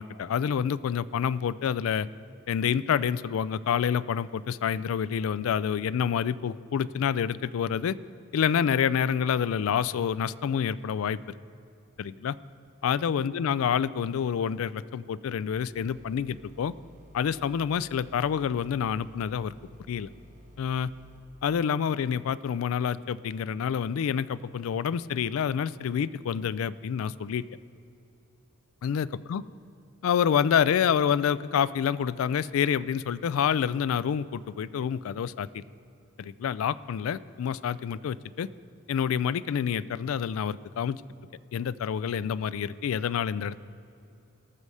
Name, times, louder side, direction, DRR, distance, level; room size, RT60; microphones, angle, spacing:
voice 1, 0.0-2.1 2.5-8.0 8.3-11.2 12.0-12.4 12.8-16.7 17.1-19.5 19.9-20.1 20.6-20.9 21.4-27.4 28.8-29.4 30.0-35.6 36.2-38.5 38.9-41.0 41.5-43.6, left 8 dB, 80° left, 18 dB, 0.3 m, -28 dB
sound 1, 15.5-21.2, right 1 dB, 40° right, 1.6 m, -53 dB
19.0 x 6.6 x 4.8 m, 2.7 s
head